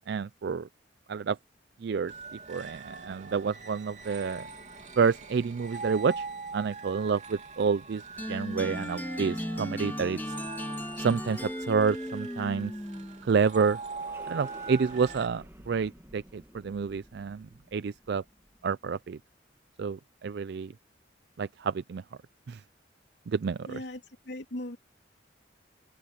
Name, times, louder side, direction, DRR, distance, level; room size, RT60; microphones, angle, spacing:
voice 1, 0.1-0.7 1.1-1.4 1.8-2.1 2.5-4.5 5.0-6.3 6.5-8.0 8.3-10.4 11.0-12.7 13.2-13.8 14.3-18.2 18.6-19.2 19.8-20.7 21.4-22.0 22.5-22.6 23.3-23.8, right 5 dB, 60° right, 0.4 m, -29 dB
sound 1, 2.1-15.3, right 4 dB, 40° right, 2.8 m, -42 dB
sound 2, 8.2-13.3, left 1 dB, 10° left, 2.0 m, -36 dB
sound 3, 12.8-18.9, right 1 dB, 15° right, 1.9 m, -53 dB
voice 2, 23.7-24.8, left 1 dB, 65° left, 2.8 m, -39 dB
head